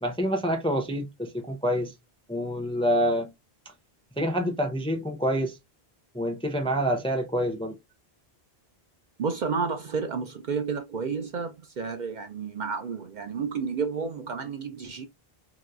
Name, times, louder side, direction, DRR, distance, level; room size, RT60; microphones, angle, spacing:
voice 1, 0.0-1.9 2.3-3.3 4.2-5.6 6.1-7.8, equal, 5° left, 0.4 m, -27 dB
voice 2, 9.2-15.1, right 5 dB, 55° right, 0.6 m, -31 dB
3.0 x 2.9 x 2.3 m
omnidirectional pair, 1.0 m